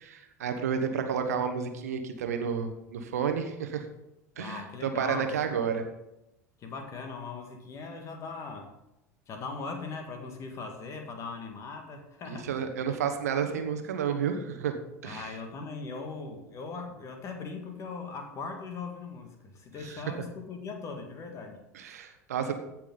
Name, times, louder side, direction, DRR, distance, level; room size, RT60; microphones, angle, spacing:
voice 1, 0.0-3.8 4.4-5.8 12.3-14.7 15.0-15.3 19.8-20.0 21.7-22.5, right 7 dB, 65° right, 6 dB, 1.1 m, -31 dB
voice 2, 4.3-5.3 6.6-8.7 9.3-12.5 15.0-21.6, left 4 dB, 35° left, 5 dB, 1.9 m, -39 dB
15.5 x 6.2 x 3.9 m, 0.89 s
figure-of-eight pair, 75°, 9 cm